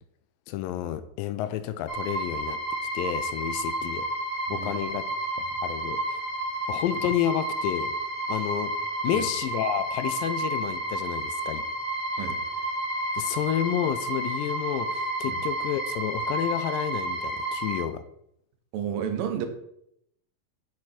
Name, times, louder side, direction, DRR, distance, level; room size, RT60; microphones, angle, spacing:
voice 1, 0.5-2.6 2.9-4.1 4.5-5.0 5.6-6.2 6.7-8.0 8.3-8.7 9.0-11.6 13.2-18.0, left 11 dB, 85° left, 12 dB, 2.2 m, -30 dB
sound 1, 1.9-17.8, right 1 dB, 45° left, 2.0 m, -31 dB
voice 2, 18.7-19.5, right 8 dB, 85° right, 6 dB, 2.6 m, -31 dB
6.6 x 6.1 x 4.2 m, 0.75 s
omnidirectional pair, 4.0 m